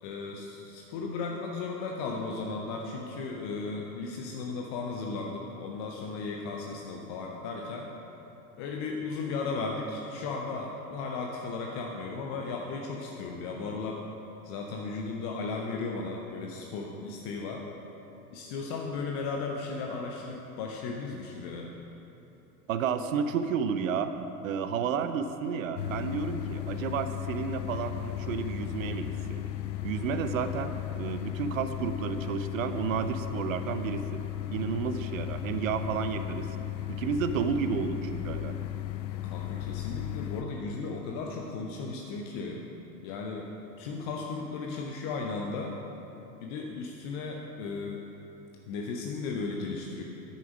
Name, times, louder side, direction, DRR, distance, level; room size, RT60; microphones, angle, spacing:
voice 1, 0.0-7.9 8.6-14.0 14.4-17.6 18.3-21.7 39.2-42.6 43.0-43.5 43.8-45.8 46.4-48.0 48.7-50.0, left 4 dB, 20° left, 0 dB, 0.4 m, -35 dB
voice 2, 22.7-24.1 24.4-29.4 29.8-34.2 34.5-36.5 36.9-38.5, right 6 dB, 55° right, 10 dB, 0.8 m, -31 dB
sound 1, 25.8-40.4, left 13 dB, 80° left, 0.6 m, -35 dB
10.0 x 8.3 x 6.1 m, 3.0 s
figure-of-eight pair, 90°, 50 cm